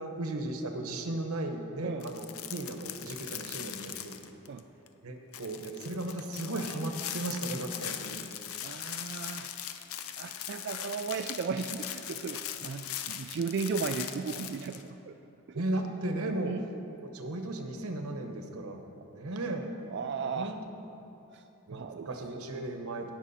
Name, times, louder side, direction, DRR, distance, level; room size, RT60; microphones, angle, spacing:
voice 1, 0.0-4.4 5.0-8.3 15.5-16.5 17.0-19.7 20.2-20.5 21.7-23.1, right 2 dB, 90° right, 5 dB, 1.0 m, -36 dB
sound 1, 2.0-4.6 4.9-5.0 5.3-14.8, left 10 dB, 80° left, 0.6 m, -40 dB
voice 2, 8.6-9.5 10.2-15.2 15.5-15.6 16.4-16.6 19.9-20.5 21.3-21.4 21.7-22.1, right 5 dB, 50° right, 6 dB, 0.3 m, -35 dB
18.0 x 6.2 x 4.2 m, 2.9 s
head